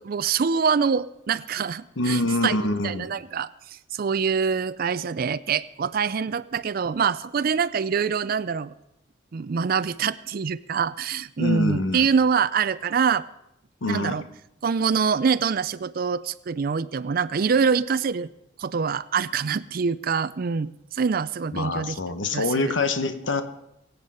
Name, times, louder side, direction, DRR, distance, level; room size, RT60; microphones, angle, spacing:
voice 1, 0.0-2.6 2.8-8.7 9.3-13.3 13.8-14.2 14.6-18.3 18.6-22.0 22.3-22.7, right 6 dB, 50° right, 14 dB, 0.4 m, -25 dB
voice 2, 2.0-3.1 11.4-12.1 13.8-14.2 21.5-23.4, left 2 dB, 85° left, 9 dB, 1.0 m, -25 dB
23.0 x 8.2 x 5.5 m, 0.83 s
head